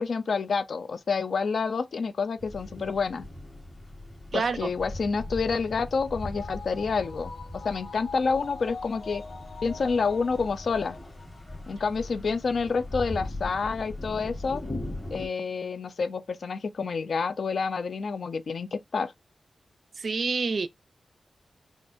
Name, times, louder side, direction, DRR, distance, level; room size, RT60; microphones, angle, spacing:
voice 1, 0.0-3.3 4.3-7.3 7.6-9.2 9.6-11.0 11.7-14.6 15.1-19.1, left 5 dB, 65° left, 0.4 m, -28 dB
sound 1, 2.4-15.3, left 1 dB, 25° left, 1.4 m, -40 dB
voice 2, 4.3-4.7 20.0-20.7, right 4 dB, 55° right, 0.4 m, -27 dB
sound 2, 5.2-11.8 12.2-12.3, left 4 dB, 50° left, 1.2 m, -45 dB
5.1 x 2.5 x 2.5 m
wide cardioid pair, 140°, 0 cm